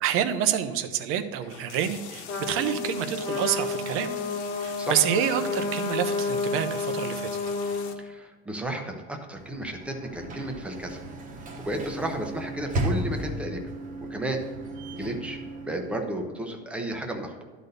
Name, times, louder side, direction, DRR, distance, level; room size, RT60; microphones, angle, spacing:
voice 1, 0.0-4.1 4.6-7.3, right 9 dB, 40° right, 9 dB, 0.7 m, -27 dB
sound 1, 1.4-7.9, left 8 dB, 75° left, 1.2 m, -44 dB
Trumpet, 2.3-7.9, left 3 dB, 30° left, 1.5 m, -30 dB
voice 2, 8.0-11.0 11.6-13.6 14.1-14.4 14.9-17.4, right 1 dB, 5° right, 3 dB, 0.7 m, -33 dB
Sliding door / Slam, 9.3-16.3, right 1 dB, 25° right, 1.1 m, -35 dB
12.0 x 4.1 x 6.6 m, 1.5 s
cardioid pair, 165°, 33 cm